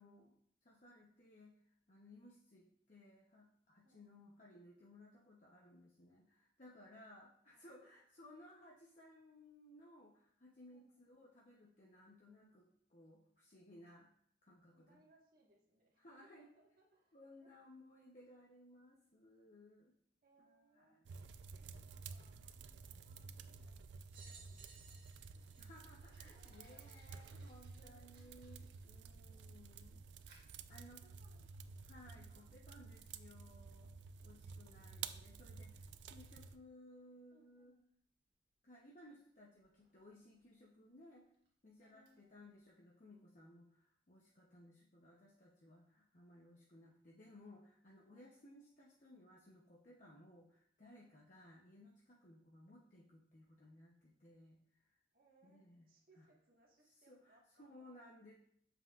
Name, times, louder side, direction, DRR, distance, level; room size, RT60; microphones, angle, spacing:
voice 1, 0.0-14.1 14.4-15.0 16.0-16.5 17.1-19.9 20.4-21.0 25.6-30.0 30.7-31.0 31.8-33.9 34.2-37.7 38.6-41.3 41.6-55.0 55.4-55.9 56.2-56.3 56.9-58.3, left 1 dB, 45° left, -3 dB, 0.8 m, -61 dB
voice 2, 7.5-7.9 10.7-11.0 14.7-17.5 20.2-21.0 21.5-23.8 24.1-25.5 26.0-27.2 27.7-28.3 29.2-30.1 30.8-32.5 37.3-37.8 41.8-42.5 48.1-48.7 51.0-51.3 55.1-57.9, right 1 dB, 55° right, -2 dB, 1.5 m, -72 dB
sound 1, 21.1-36.6, right 5 dB, 85° right, 0.4 m, -53 dB
sound 2, 24.1-26.8 27.5-27.6 28.7-28.8, right 4 dB, 30° right, 1.3 m, -61 dB
Fire, 25.3-42.7, right 3 dB, 70° right, 1.4 m, -75 dB
7.3 x 5.8 x 2.4 m, 0.65 s
head